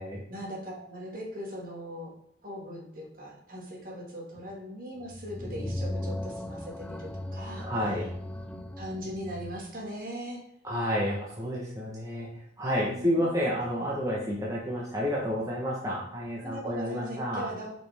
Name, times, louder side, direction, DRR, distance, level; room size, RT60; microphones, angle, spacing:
voice 1, 0.3-2.1 2.4-7.7 8.5-10.4 12.8-13.3 16.4-17.7, equal, 50° right, -1 dB, 2.0 m, -40 dB
sound 1, 5.0-9.7, left 1 dB, 5° left, 0.4 m, -37 dB
voice 2, 7.6-8.1 10.6-17.4, equal, 20° right, -4 dB, 1.2 m, -30 dB
8.6 x 5.2 x 3.5 m, 0.74 s
head